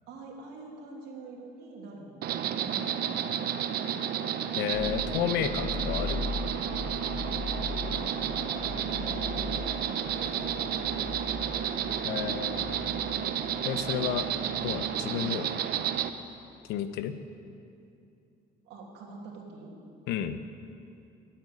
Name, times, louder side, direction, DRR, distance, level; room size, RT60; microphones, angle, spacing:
voice 1, 0.1-3.3 8.0-11.5 18.6-19.7, right 3 dB, 85° right, -1 dB, 2.8 m, -45 dB
Insect, 2.2-16.1, right 9 dB, 65° right, 0.8 m, -31 dB
voice 2, 4.5-6.3 12.0-12.9 13.6-14.3 14.6-15.6 16.7-17.2 20.1-20.4, left 10 dB, 90° left, 11 dB, 0.8 m, -32 dB
sound 1, 4.7-16.1, left 4 dB, 30° left, 0.7 m, -39 dB
13.0 x 8.8 x 9.7 m, 2.6 s
cardioid pair, 110°, 17 cm